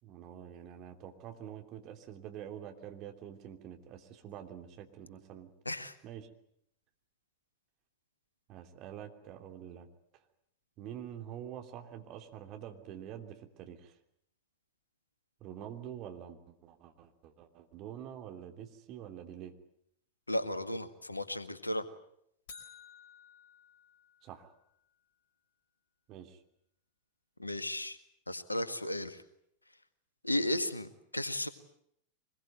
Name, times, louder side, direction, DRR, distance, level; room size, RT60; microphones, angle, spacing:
voice 1, 0.0-5.5 6.0-6.3 8.5-9.9 10.8-14.0 15.4-19.5 24.2-24.5 26.1-26.4, right 10 dB, 40° right, 5 dB, 3.1 m, -46 dB
voice 2, 20.3-21.9 27.4-28.0 28.3-29.2 30.2-31.5, left 1 dB, 85° left, 12 dB, 1.8 m, -34 dB
sound 1, 22.5-24.6, left 6 dB, 50° left, 4.7 m, -54 dB
24.5 x 21.5 x 9.3 m, 0.72 s
figure-of-eight pair, 90°, 0 cm